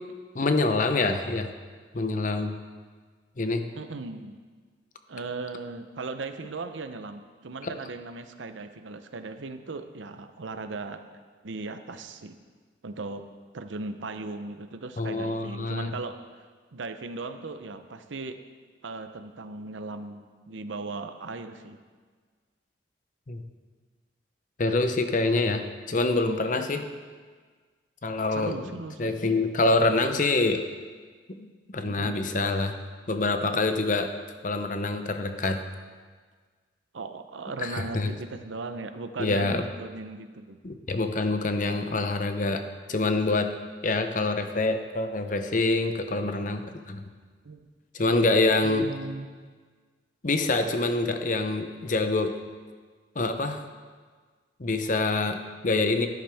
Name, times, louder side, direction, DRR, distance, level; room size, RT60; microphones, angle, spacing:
voice 1, 0.3-1.5 1.9-2.6 3.4-3.7 7.6-7.7 15.0-15.9 23.3-23.4 24.6-26.9 28.0-28.6 29.0-30.6 31.3-32.8 33.1-34.1 34.4-35.6 37.7-38.1 39.2-39.6 40.6-42.6 42.9-43.5 43.8-47.0 47.9-48.9 50.2-52.4 53.2-53.6 54.6-56.1, left 2 dB, 45° left, 7 dB, 0.7 m, -26 dB
voice 2, 3.7-4.4 5.1-11.0 11.4-12.3 12.8-13.2 13.5-16.2 16.7-18.4 18.8-20.2 20.5-21.8 28.3-29.3 31.8-32.2 36.9-40.6 47.4-47.6 48.6-49.3, right 3 dB, 85° right, 9 dB, 0.7 m, -37 dB
13.0 x 10.5 x 3.5 m, 1.5 s
head